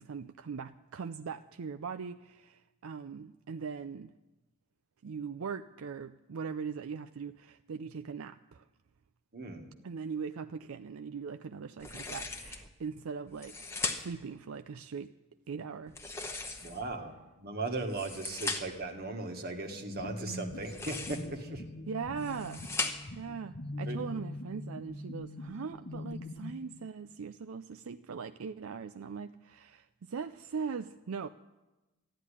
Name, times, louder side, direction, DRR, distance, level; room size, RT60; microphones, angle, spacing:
voice 1, 0.0-4.1 5.0-8.6 9.8-13.6 13.8-15.1 15.5-16.0 16.6-16.8 21.9-22.7 23.1-31.3, right 6 dB, 70° right, 9 dB, 0.5 m, -40 dB
voice 2, 9.3-9.7 16.6-21.6 23.8-24.0, right 2 dB, 45° right, 4 dB, 1.6 m, -38 dB
sound 1, 11.8-12.7 13.3-14.3 15.9-17.0 17.8-18.9 20.5-21.4 22.0-23.2, left 3 dB, 10° left, 1.0 m, -38 dB
sound 2, 19.7-26.5, left 2 dB, 50° left, 1.1 m, -43 dB
14.0 x 10.0 x 9.9 m, 1.1 s
head